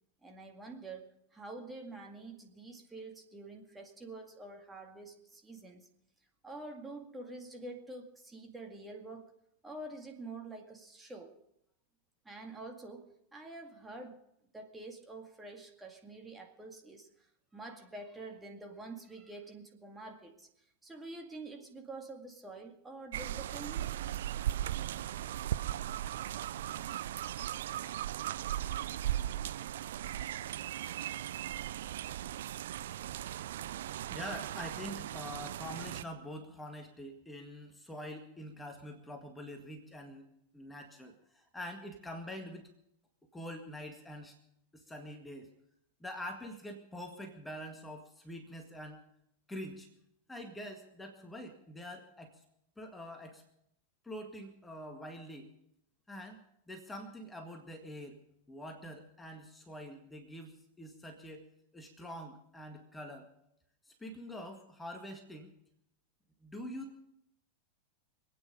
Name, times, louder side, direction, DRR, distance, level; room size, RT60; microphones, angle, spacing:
voice 1, 0.2-5.9 6.4-9.3 9.6-11.4 12.3-14.2 14.5-17.1 17.5-20.5 20.8-23.9, right 2 dB, 10° right, 2 dB, 2.1 m, -47 dB
sound 1, 23.1-36.0, right 12 dB, 60° right, 0.5 m, -37 dB
voice 2, 34.1-42.7 43.3-44.4 44.7-45.5 46.0-49.0 49.5-49.9 50.3-52.4 52.8-53.4 54.0-55.5 56.1-58.2 58.5-61.4 61.7-63.3 63.9-65.5 66.4-67.0, equal, 10° left, 4 dB, 1.9 m, -45 dB
26.0 x 9.3 x 5.3 m, 0.77 s
figure-of-eight pair, 90°, 0 cm